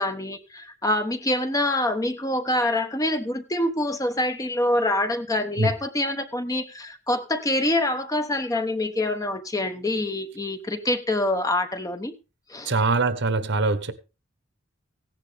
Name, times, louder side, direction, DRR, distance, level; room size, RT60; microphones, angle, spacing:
voice 1, 0.0-12.1 12.5-12.7, left 1 dB, 15° left, 1.0 m, -25 dB
voice 2, 12.7-13.9, right 3 dB, 60° right, 1.2 m, -23 dB
16.0 x 10.5 x 3.5 m
head